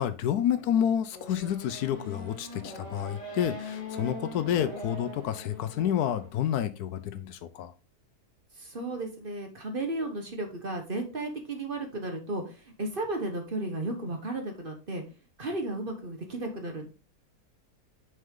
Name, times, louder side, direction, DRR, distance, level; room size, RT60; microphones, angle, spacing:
voice 1, 0.0-7.7, left 10 dB, 75° left, 12 dB, 1.1 m, -29 dB
Race car auto racing / Accelerating revving vroom, 1.1-6.3, left 1 dB, 55° left, 2.8 m, -41 dB
voice 2, 8.6-15.0 15.4-16.9, right 2 dB, 35° right, 4 dB, 1.2 m, -34 dB
6.3 x 5.6 x 3.7 m, 0.32 s
omnidirectional pair, 1.7 m